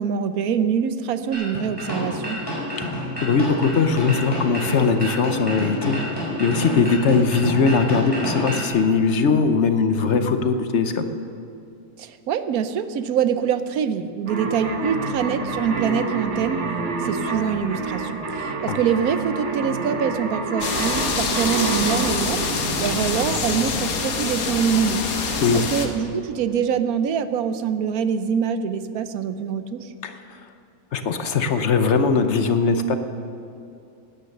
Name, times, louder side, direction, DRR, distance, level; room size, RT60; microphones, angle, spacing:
voice 1, 0.0-2.4 12.0-16.6 17.0-22.4 22.8-25.0 25.5-29.9, right 7 dB, 75° right, 11 dB, 1.2 m, -24 dB
sound 1, 1.3-8.7, left 1 dB, 15° left, 4.4 m, -29 dB
voice 2, 3.2-6.0 6.4-11.0 18.7-18.8 25.4-25.9 30.0-30.4 30.9-33.0, left 4 dB, 55° left, 9 dB, 1.0 m, -20 dB
sound 2, 14.3-24.4, right 3 dB, 50° right, 1.6 m, -28 dB
sound 3, 20.6-25.9, left 5 dB, 70° left, 1.6 m, -26 dB
17.0 x 9.7 x 6.6 m, 2.7 s
omnidirectional pair, 1.6 m